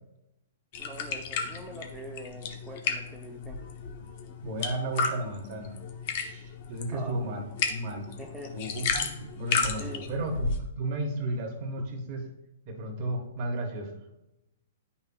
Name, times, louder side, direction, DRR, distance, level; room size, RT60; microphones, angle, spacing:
sound 1, 0.7-10.6, left 5 dB, 50° left, 0.9 m, -34 dB
voice 1, 0.8-3.6 6.9-7.2 8.2-8.5 9.8-10.1, right 1 dB, 5° right, -2 dB, 0.6 m, -43 dB
voice 2, 4.4-5.8 6.2-8.1 8.5-12.3 12.6-14.0, right 2 dB, 45° right, 3 dB, 1.5 m, -34 dB
9.1 x 5.7 x 2.4 m, 0.89 s
hypercardioid pair, 140°, 0 cm